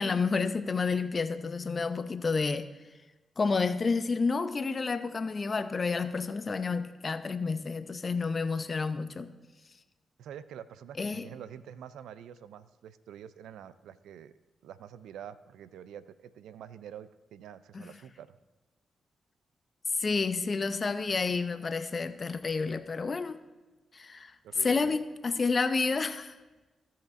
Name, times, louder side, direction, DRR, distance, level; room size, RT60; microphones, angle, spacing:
voice 1, 0.0-2.7 3.4-9.3 11.0-11.3 17.7-17.8 19.9-23.4 23.9-26.3, left 4 dB, 45° left, 11 dB, 0.5 m, -30 dB
voice 2, 10.2-14.3 14.6-18.3 24.4-25.0, right 9 dB, 85° right, 15 dB, 0.4 m, -47 dB
16.5 x 5.7 x 2.5 m, 1.2 s
supercardioid pair, 45°, 0 cm